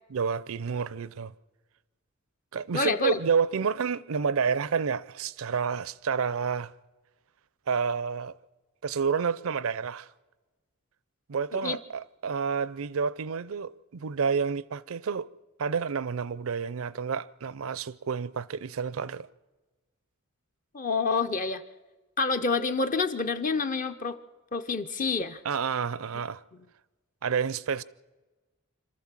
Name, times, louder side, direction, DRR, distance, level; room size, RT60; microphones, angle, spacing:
voice 1, 0.1-1.3 2.5-6.7 7.7-8.3 8.8-10.1 11.3-15.3 15.6-19.3 25.4-26.4 27.2-27.8, right 6 dB, 70° right, 0.5 m, -29 dB
voice 2, 2.7-3.2 11.5-11.8 20.7-21.6 22.2-24.2 24.5-25.4, left 4 dB, 40° left, 0.7 m, -28 dB
26.0 x 13.5 x 7.5 m
head